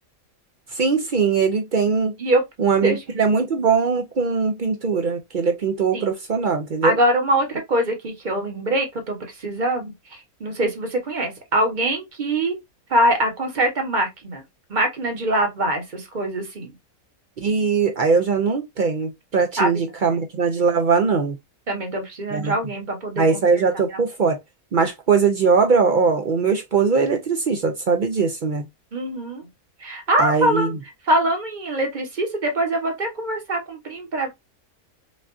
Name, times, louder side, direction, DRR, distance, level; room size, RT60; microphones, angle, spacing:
voice 1, 0.7-2.1 2.6-7.0 17.4-21.4 22.3-22.5 23.2-24.4 24.7-28.6 30.2-30.7, right 5 dB, 60° right, 0.5 m, -20 dB
voice 2, 6.8-12.6 12.9-14.4 14.7-16.7 19.6-19.9 21.7-24.0 28.9-29.5 29.8-30.7 31.0-34.3, right 1 dB, 35° right, 1.1 m, -23 dB
5.3 x 2.4 x 2.5 m
omnidirectional pair, 1.5 m